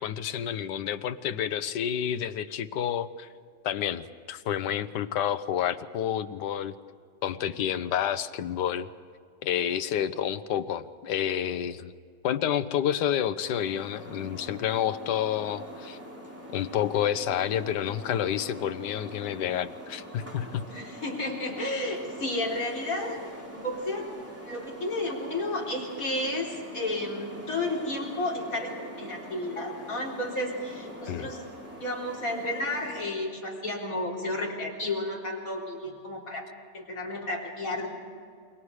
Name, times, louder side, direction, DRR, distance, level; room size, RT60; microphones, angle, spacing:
voice 1, 0.0-3.3 3.6-6.7 7.2-8.9 9.4-11.9 12.2-16.0 16.5-20.6 31.1-31.3, left 10 dB, 75° left, 11 dB, 1.4 m, -29 dB
sound 1, 13.4-33.1, equal, 5° right, 3.7 m, -44 dB
voice 2, 20.7-23.2 23.5-24.1 24.4-31.4 31.8-36.5 36.7-37.9, left 1 dB, 50° left, -3 dB, 4.5 m, -32 dB
29.0 x 22.5 x 4.9 m, 2.2 s
omnidirectional pair, 1.9 m